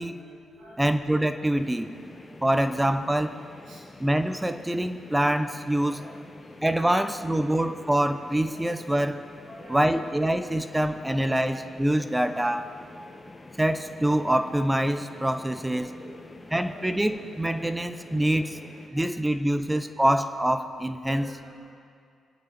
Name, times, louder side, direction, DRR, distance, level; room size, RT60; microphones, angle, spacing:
voice 1, 0.0-0.9 1.3-1.9 2.3-2.6 3.7-3.9 5.9-7.9 8.5-8.7 9.5-10.5 12.0-12.5 13.0-13.5 15.3-17.1 17.5-17.8 18.3-18.4 18.9-19.2 19.5-19.6 21.0-21.7, right 1 dB, 60° right, -4 dB, 3.3 m, -49 dB
voice 2, 0.8-1.9 2.4-3.4 4.0-6.0 6.6-9.2 9.7-12.7 13.6-15.9 16.5-18.6 18.9-21.3, right 1 dB, 10° right, 9 dB, 1.0 m, -25 dB
sound 1, 1.6-18.9, left 2 dB, 25° left, 1.3 m, -47 dB
24.5 x 8.9 x 4.4 m, 2.3 s
hypercardioid pair, 45°, 0 cm